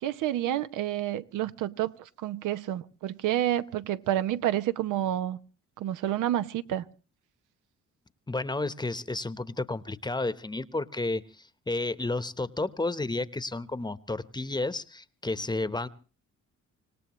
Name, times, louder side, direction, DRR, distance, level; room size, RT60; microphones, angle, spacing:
voice 1, 0.0-5.4 5.8-6.8, right 12 dB, 85° right, 0.8 m, -29 dB
voice 2, 8.3-15.9, left 2 dB, 15° left, 1.0 m, -32 dB
26.0 x 18.0 x 3.1 m
cardioid pair, 90°, 30 cm